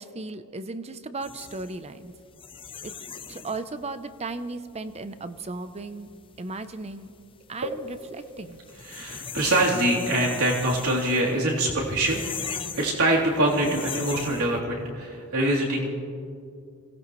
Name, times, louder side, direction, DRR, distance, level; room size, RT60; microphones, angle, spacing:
voice 1, 0.0-2.1 2.8-2.9 3.3-6.1 6.4-7.1 7.5-8.6, right 3 dB, 30° right, 11 dB, 0.7 m, -36 dB
sound 1, 1.2-14.6, left 6 dB, 25° left, 0.6 m, -40 dB
voice 2, 8.8-15.9, right 1 dB, 75° right, -4 dB, 3.5 m, -24 dB
25.0 x 18.0 x 3.2 m, 2.4 s
head